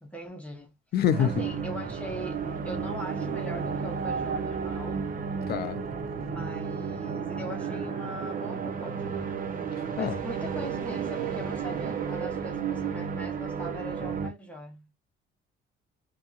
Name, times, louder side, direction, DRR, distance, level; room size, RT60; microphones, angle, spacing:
voice 1, 0.0-0.7 1.2-5.0 6.3-9.3 10.0-14.9, equal, 5° left, 0.7 m, -41 dB
voice 2, 0.9-1.3 5.5-5.8 10.0-10.2, left 9 dB, 50° left, 0.5 m, -25 dB
sound 1, 1.1-14.3, right 6 dB, 40° right, 0.5 m, -32 dB
2.8 x 2.7 x 2.4 m
cardioid pair, 175°, 21 cm